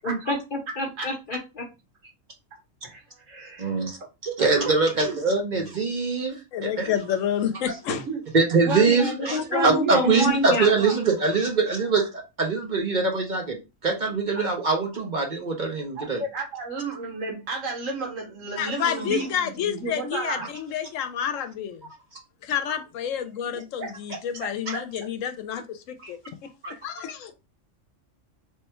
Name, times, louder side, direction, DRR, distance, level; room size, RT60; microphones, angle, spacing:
voice 1, 0.0-1.6 8.8-10.7, left 2 dB, 45° left, 0.9 m, -28 dB
voice 2, 2.8-3.8 4.2-4.7 5.0-5.2 7.9-8.2 8.6-9.1 9.5-10.2 10.7-10.9 16.0-20.4 23.8-24.8 26.7-26.8, right 3 dB, 80° right, 1.5 m, -32 dB
voice 3, 3.6-4.0 4.4-6.4 6.8-6.9 8.3-16.2 24.7-24.8 26.0-26.1 26.6-26.7, right 4 dB, 45° right, 0.7 m, -23 dB
voice 4, 6.5-8.0 18.6-21.9 22.4-26.2 26.8-27.3, left 9 dB, 80° left, 1.0 m, -29 dB
3.4 x 2.2 x 4.2 m
omnidirectional pair, 1.3 m